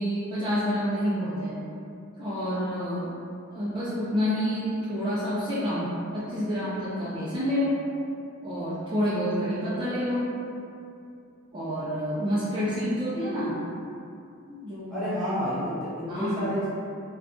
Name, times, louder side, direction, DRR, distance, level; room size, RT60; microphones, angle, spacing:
voice 1, 0.0-1.5 2.2-3.1 3.5-7.8 8.4-10.3 11.5-13.6 14.5-15.1 16.1-16.5, equal, 20° right, -13 dB, 0.5 m, -28 dB
voice 2, 14.9-16.7, equal, ahead, -13 dB, 1.1 m, -30 dB
2.5 x 2.3 x 3.6 m, 2.6 s
head